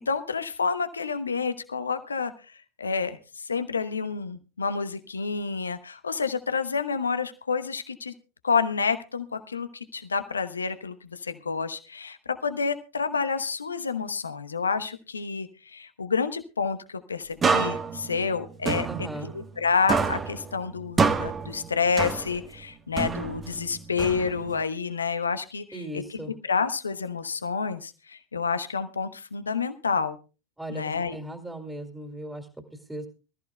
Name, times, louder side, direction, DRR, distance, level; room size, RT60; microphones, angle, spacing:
voice 1, 0.0-2.3 2.8-8.1 8.4-12.2 12.4-18.9 19.2-25.8 26.1-26.2 26.5-30.2 30.7-31.1, left 5 dB, 80° left, 11 dB, 1.0 m, -29 dB
sound 1, 17.4-19.6 19.9-22.6 23.0-24.6, right 5 dB, 25° right, 1.3 m, -28 dB
voice 2, 18.9-19.3 25.7-26.3 30.6-33.1, right 1 dB, 5° right, 5 dB, 2.4 m, -38 dB
24.0 x 14.0 x 2.3 m, 0.33 s
figure-of-eight pair, 80°, 0 cm